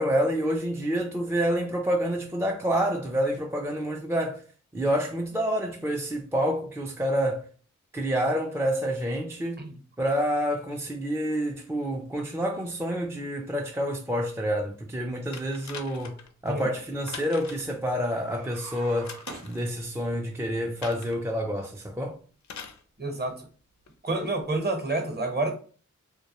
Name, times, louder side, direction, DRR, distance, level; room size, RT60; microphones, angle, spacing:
voice 1, 0.0-4.4 4.7-7.5 7.9-9.7 10.0-16.2 16.4-22.2, equal, 10° right, 0.3 m, -28 dB
sound 1, 15.3-16.3 17.1-17.8 19.0-19.6 20.8-21.2 22.4-22.8 23.9-24.0, left 6 dB, 65° left, 0.5 m, -42 dB
sound 2, 18.2-20.2, right 3 dB, 85° right, 0.5 m, -45 dB
voice 2, 23.0-23.4 24.0-25.5, right 2 dB, 35° right, 0.8 m, -28 dB
2.1 x 2.1 x 2.8 m
cardioid pair, 40°, 31 cm